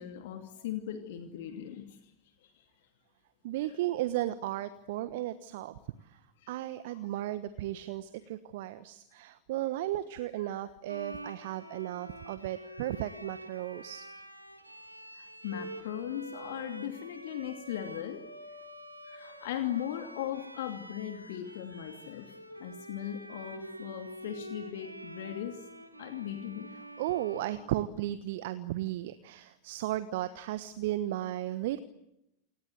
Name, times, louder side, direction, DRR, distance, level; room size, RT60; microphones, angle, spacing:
voice 1, 0.0-2.0 2.5-2.6 6.4-6.5 6.9-7.1 15.1-18.2 19.1-22.3 22.6-25.6 26.0-26.7, left 11 dB, 55° left, 6 dB, 2.7 m, -38 dB
voice 2, 3.4-5.8 6.5-14.1 27.0-31.8, right 14 dB, 50° right, 14 dB, 1.2 m, -35 dB
Bowed string instrument, 10.9-28.3, right 1 dB, 85° right, 2.6 m, -47 dB
29.0 x 26.0 x 8.0 m, 0.86 s
figure-of-eight pair, 90°, 0 cm